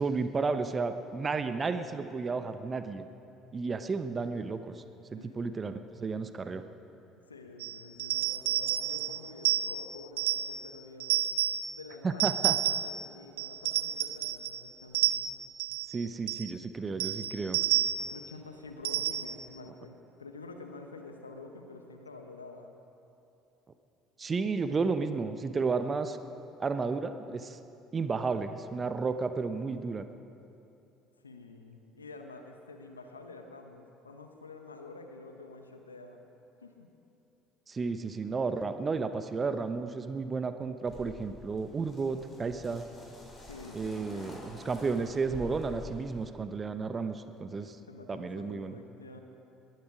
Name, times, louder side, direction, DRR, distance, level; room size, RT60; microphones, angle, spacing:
voice 1, 0.0-3.0 3.5-4.7 5.1-6.6 12.0-12.6 15.9-17.6 24.2-26.2 26.6-27.6 27.9-30.1 37.7-42.8 43.7-47.8 48.1-48.8, right 4 dB, 30° right, 10 dB, 0.9 m, -32 dB
voice 2, 7.3-11.1 11.7-15.2 18.0-22.7 31.2-36.2 36.6-36.9 43.4-44.4 47.6-49.2, left 3 dB, 90° left, 5 dB, 1.0 m, -48 dB
sound 1, 7.6-10.6 11.0-11.7 12.2-13.0 13.4-14.6 14.9-16.0 16.3-16.5 17.0-18.2 18.8-19.4, right 12 dB, 75° right, 0.5 m, -30 dB
sound 2, 40.9-46.3, left 2 dB, 30° left, 4.5 m, -48 dB
22.0 x 11.0 x 5.0 m, 2.8 s
figure-of-eight pair, 60°, 0 cm